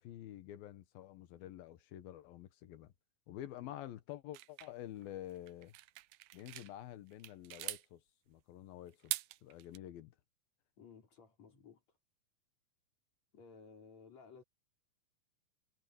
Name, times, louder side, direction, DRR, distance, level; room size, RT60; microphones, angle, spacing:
voice 1, 0.0-2.9 3.3-5.8 6.3-10.1, left 12 dB, 90° left, 3.1 m, -49 dB
sound 1, 4.3-6.7 7.1-7.9 8.9-9.8, right 18 dB, 80° right, 2.0 m, -43 dB
voice 2, 10.8-12.0 13.3-14.4, left 5 dB, 50° left, 5.9 m, -57 dB
omnidirectional pair, 4.1 m